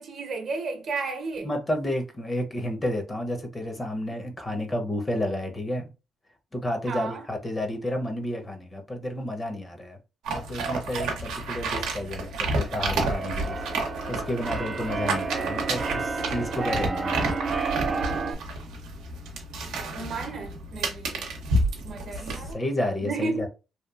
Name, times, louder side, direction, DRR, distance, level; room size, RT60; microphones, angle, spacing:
voice 1, 0.0-1.5 6.9-7.3 19.9-21.3 21.8-22.6 23.0-23.5, right 3 dB, 55° right, 0.8 m, -33 dB
voice 2, 1.4-5.9 6.5-10.0 10.3-13.6 14.1-17.4 22.5-23.5, left 1 dB, 25° left, 0.8 m, -31 dB
sound 1, 10.2-22.5, right 2 dB, 90° right, 0.7 m, -30 dB
Keyboard (musical), 12.5-18.3, right 4 dB, 40° right, 0.4 m, -31 dB
2.9 x 2.3 x 2.3 m
cardioid pair, 90°, 0 cm